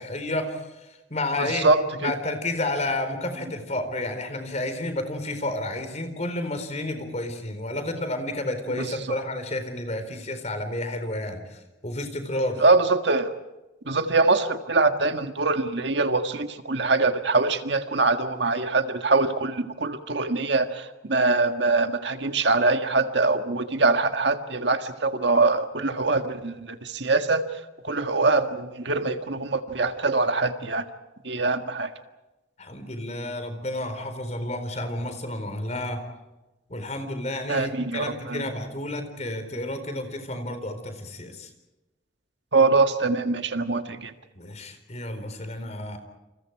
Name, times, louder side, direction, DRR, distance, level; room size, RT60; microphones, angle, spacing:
voice 1, 0.0-1.7 2.0-12.6 32.6-36.0 36.7-41.5 44.3-46.0, left 1 dB, 35° left, 8 dB, 4.2 m, -31 dB
voice 2, 1.4-2.1 8.8-8.9 12.6-13.3 13.9-30.9 31.2-31.9 37.5-38.4 42.5-44.1, right 3 dB, 60° right, 7 dB, 1.8 m, -23 dB
29.5 x 28.0 x 4.8 m, 1.1 s
head